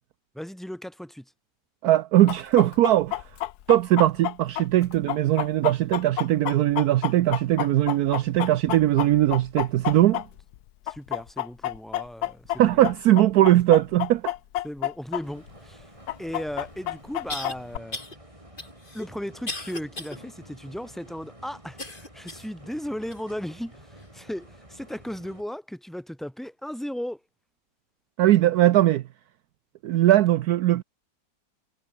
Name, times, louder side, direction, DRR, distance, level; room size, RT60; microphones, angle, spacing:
voice 1, 0.4-1.3 10.9-12.8 14.6-15.9 16.2-18.0 18.9-27.2, equal, ahead, 6.9 m, -36 dB
voice 2, 1.8-3.2 3.7-10.2 12.6-14.3 28.2-29.0 29.8-30.8, right 14 dB, 70° right, 1.1 m, -20 dB
Chicken rooster, 2.3-10.6 10.9-15.2 15.5-15.6 16.1-17.8, left 13 dB, 70° left, 1.2 m, -29 dB
sound 1, 15.2-25.4, right 1 dB, 20° right, 5.5 m, -50 dB
sound 2, 16.3-16.4 17.3-17.6 17.9-18.2 18.6-20.2 20.6-20.7 21.8-22.5 23.1-23.2 24.0-24.1, left 2 dB, 30° left, 3.4 m, -36 dB
omnidirectional pair, 1.8 m